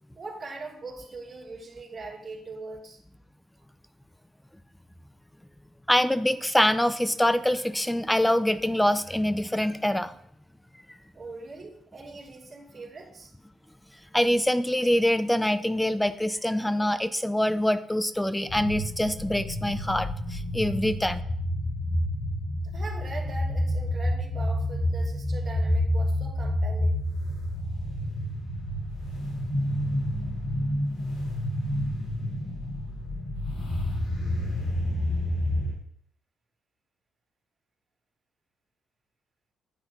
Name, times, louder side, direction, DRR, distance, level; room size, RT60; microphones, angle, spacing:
voice 1, 0.2-3.0 11.1-13.3 22.6-27.0, right 3 dB, 35° right, -4 dB, 3.7 m, -41 dB
voice 2, 5.9-10.1 14.1-21.2, left 1 dB, 5° left, 13 dB, 0.5 m, -25 dB
sound 1, 18.5-35.7, left 1 dB, 85° left, 3.9 m, -29 dB
9.5 x 8.1 x 3.0 m, 0.69 s
cardioid pair, 90°, 0 cm